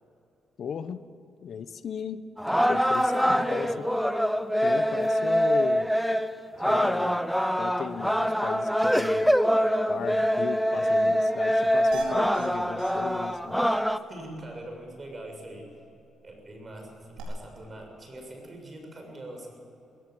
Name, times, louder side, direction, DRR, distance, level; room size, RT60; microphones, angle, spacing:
voice 1, 0.6-1.0 1.4-2.2 2.7-3.8 4.6-5.9 6.6-7.2 7.6-9.4 9.9-13.6, left 7 dB, 60° left, 13 dB, 1.0 m, -36 dB
sound 1, 2.4-14.0, equal, ahead, 0.9 m, -24 dB
voice 2, 3.2-3.8 14.1-15.7 16.2-19.6, right 1 dB, 30° right, 2 dB, 6.9 m, -42 dB
sound 2, 11.9-12.5 12.8-12.9 13.2-13.3 13.7-13.8 17.2-17.3, right 6 dB, 80° right, 6.9 m, -40 dB
21.0 x 18.0 x 7.9 m, 2.8 s
cardioid pair, 90°, 0 cm